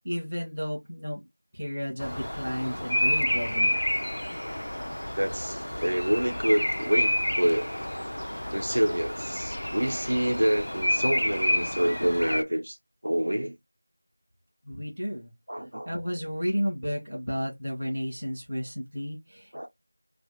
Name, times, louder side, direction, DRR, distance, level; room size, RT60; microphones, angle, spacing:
voice 1, 0.0-1.2 1.5-3.8 14.6-15.3 15.8-19.7, equal, 5° right, 0.5 m, -32 dB
Bird vocalization bird call bird song, 2.0-12.4, equal, 50° left, 0.3 m, -29 dB
voice 2, 5.1-7.7 8.5-12.8 13.0-13.5 15.5-15.9 19.5-19.7, equal, 50° right, 0.6 m, -27 dB
2.4 x 2.4 x 2.9 m
figure-of-eight pair, 180°, 0 cm